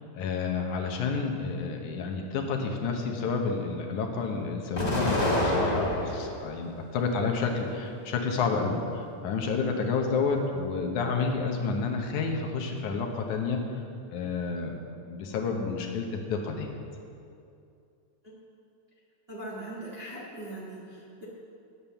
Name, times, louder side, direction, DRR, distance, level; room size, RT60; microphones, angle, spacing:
voice 1, 0.0-13.6 14.1-14.8 15.1-16.7, left 4 dB, 80° left, 2 dB, 2.5 m, -30 dB
Explosion, 4.8-6.4 6.9-7.8, left 1 dB, 25° left, 0.8 m, -28 dB
voice 2, 19.3-21.3, right 1 dB, 30° right, -5 dB, 1.2 m, -40 dB
9.5 x 8.9 x 7.0 m, 2.5 s
omnidirectional pair, 3.5 m